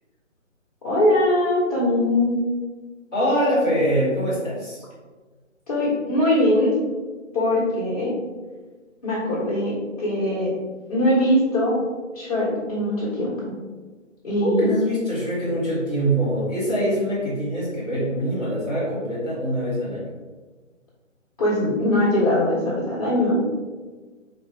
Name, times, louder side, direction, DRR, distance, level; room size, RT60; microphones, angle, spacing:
voice 1, 0.8-2.4 5.7-6.8 7.3-8.1 9.0-10.5 10.9-11.8 12.1-13.5 14.2-14.7 21.4-23.4, left 1 dB, 30° left, -7 dB, 1.5 m, -21 dB
voice 2, 3.1-4.8 14.4-20.1, equal, 5° left, -23 dB, 0.9 m, -24 dB
4.7 x 2.8 x 3.4 m, 1.3 s
figure-of-eight pair, 150°, 39 cm